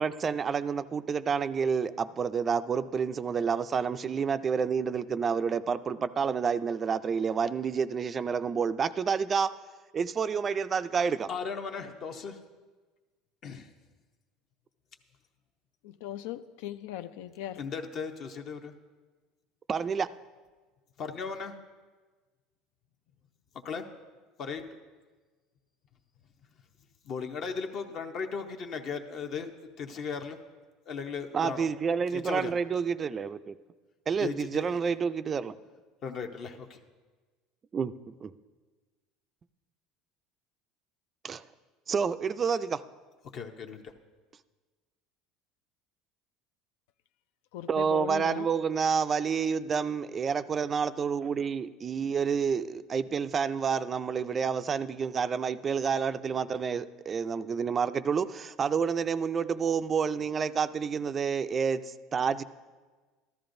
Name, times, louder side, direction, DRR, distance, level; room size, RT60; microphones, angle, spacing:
voice 1, 0.0-9.5 9.9-11.3 19.7-20.1 31.3-33.5 34.1-35.5 37.7-37.9 38.2-38.3 41.2-41.5 41.9-42.8 47.7-62.4, right 6 dB, 30° right, 13 dB, 0.3 m, -29 dB
voice 2, 11.3-12.4 13.4-13.7 17.6-18.7 21.0-21.5 23.6-23.8 24.4-24.6 27.1-29.5 29.8-30.4 30.9-31.7 32.1-32.5 34.2-34.7 36.0-36.8 43.3-43.9, left 5 dB, 45° left, 5 dB, 0.7 m, -36 dB
voice 3, 15.8-17.6 47.5-48.5 48.8-48.9, left 12 dB, 85° left, 12 dB, 0.4 m, -39 dB
13.5 x 12.5 x 2.6 m, 1.3 s
cardioid pair, 130°, 0 cm